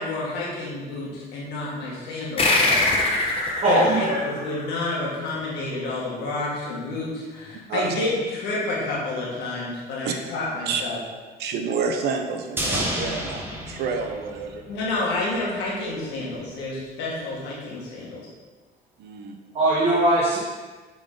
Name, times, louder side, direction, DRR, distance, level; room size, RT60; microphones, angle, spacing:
voice 1, 0.0-2.8 3.6-11.0 14.7-18.2, left 2 dB, 85° left, -5 dB, 1.7 m, -29 dB
sound 1, 2.4-5.4, left 2 dB, 35° left, 1.1 m, -24 dB
voice 2, 3.6-4.2 19.5-20.4, right 1 dB, 40° right, -5 dB, 1.2 m, -20 dB
voice 3, 11.4-14.6 19.0-19.4, right 5 dB, 75° right, 5 dB, 0.7 m, -29 dB
sound 2, 12.6-15.0 15.2-15.3, equal, 15° right, 1.1 m, -30 dB
7.0 x 3.9 x 3.9 m, 1.3 s
cardioid pair, 110°, 17 cm